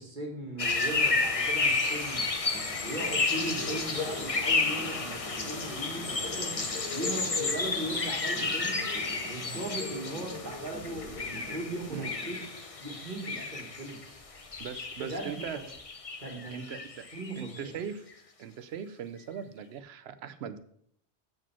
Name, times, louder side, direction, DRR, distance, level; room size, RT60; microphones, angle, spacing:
voice 1, 0.0-2.3 2.8-8.8 9.3-12.4 12.8-14.0 15.0-15.7 16.2-16.7 17.1-17.7, right 2 dB, 50° right, 0 dB, 1.8 m, -38 dB
sound 1, 0.6-17.6, left 3 dB, 35° left, 0.8 m, -32 dB
sound 2, 2.5-12.5, right 1 dB, 5° right, 0.8 m, -46 dB
voice 2, 14.6-15.6 16.5-17.0 17.4-18.0 18.4-20.6, right 7 dB, 75° right, 12 dB, 0.9 m, -39 dB
7.6 x 5.0 x 5.7 m, 0.68 s
omnidirectional pair, 1.1 m